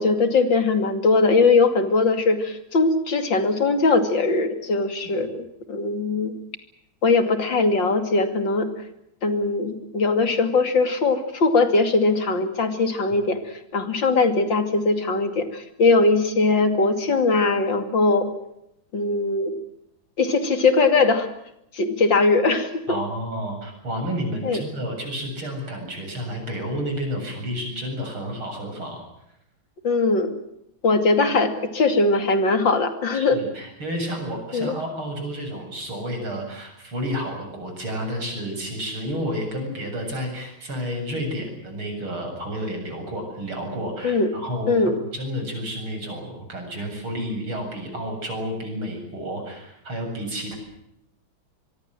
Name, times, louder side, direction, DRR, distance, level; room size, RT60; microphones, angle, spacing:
voice 1, 0.0-6.3 7.0-8.7 9.2-13.4 13.7-18.3 18.9-19.5 20.2-21.3 21.7-22.8 24.4-24.6 29.8-30.4 30.8-33.4 34.5-34.7 44.0-44.3 44.7-45.0, left 3 dB, 60° left, 8 dB, 3.3 m, -20 dB
voice 2, 22.9-29.0 33.1-44.8 45.1-50.6, equal, 90° right, 4 dB, 8.6 m, -31 dB
25.5 x 23.0 x 7.6 m, 0.78 s
omnidirectional pair, 2.2 m